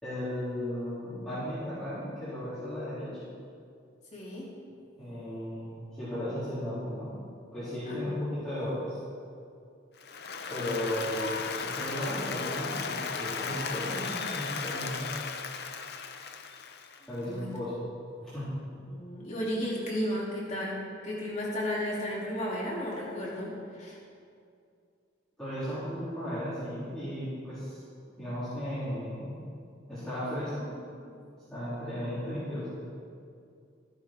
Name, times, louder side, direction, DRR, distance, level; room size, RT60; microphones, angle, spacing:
voice 1, 0.0-3.3 4.9-7.2 7.5-9.0 10.5-15.1 17.1-17.9 18.2-18.5 25.4-27.8 28.2-29.4 29.9-31.2 31.5-32.7, equal, 5° left, -15 dB, 3.7 m, -35 dB
voice 2, 4.1-4.5 7.9-8.2 17.2-17.7 18.9-20.8 21.0-24.0, equal, 35° left, -5 dB, 2.6 m, -34 dB
Applause, 10.0-17.2, left 5 dB, 55° left, 0.7 m, -36 dB
14.5 x 10.5 x 4.4 m, 2.4 s
head